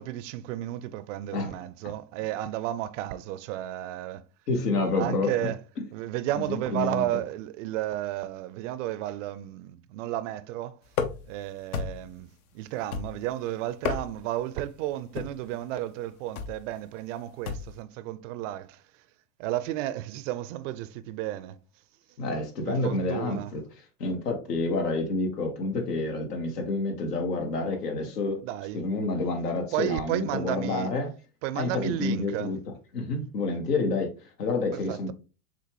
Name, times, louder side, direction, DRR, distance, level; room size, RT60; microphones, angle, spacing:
voice 1, 0.0-4.2 4.8-5.6 5.9-10.8 11.3-19.0 19.4-21.6 22.7-23.5 28.4-28.8 29.7-30.9 31.4-32.5 34.7-35.1, right 14 dB, 55° right, 0.5 m, -33 dB
voice 2, 4.5-5.5 6.5-7.1 22.2-23.6 24.0-28.4 28.7-31.1 31.5-32.6 32.9-35.1, left 3 dB, 85° left, 1.5 m, -28 dB
sound 1, 10.9-11.4 11.7-12.2 12.9-13.4 13.7-14.4 15.1-15.5 16.4-16.6 17.5-17.8, left 6 dB, 65° left, 0.9 m, -32 dB
6.7 x 2.5 x 3.0 m
hypercardioid pair, 115°, 46 cm